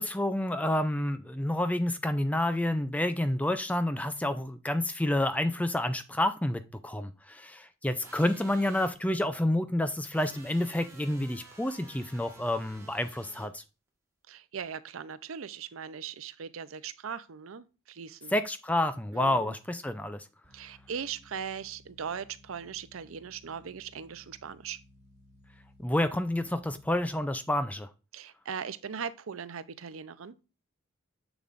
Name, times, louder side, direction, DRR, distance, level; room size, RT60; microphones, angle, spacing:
voice 1, 0.0-13.6 18.3-20.2 25.8-27.9, left 1 dB, 5° left, 0.4 m, -29 dB
sound 1, 8.0-8.9 10.1-13.5, right 2 dB, 15° right, 1.5 m, -52 dB
voice 2, 14.3-18.3 19.1-19.5 20.5-24.8 28.1-30.3, right 7 dB, 85° right, 0.5 m, -39 dB
sound 2, 20.4-27.3, left 1 dB, 35° right, 1.8 m, -59 dB
7.0 x 6.9 x 2.5 m
head